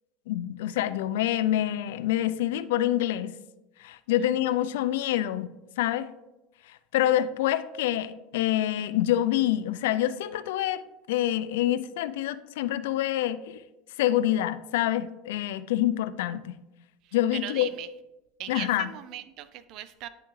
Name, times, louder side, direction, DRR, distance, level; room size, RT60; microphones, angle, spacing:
voice 1, 0.3-3.3 3.8-6.1 6.7-10.8 11.1-13.6 14.0-16.6 17.1-17.7 18.5-18.9, left 13 dB, 80° left, 13 dB, 0.3 m, -26 dB
voice 2, 17.0-17.9 18.4-20.1, right 12 dB, 55° right, 13 dB, 0.4 m, -39 dB
9.9 x 3.4 x 3.1 m, 0.97 s
supercardioid pair, 100°, 0 cm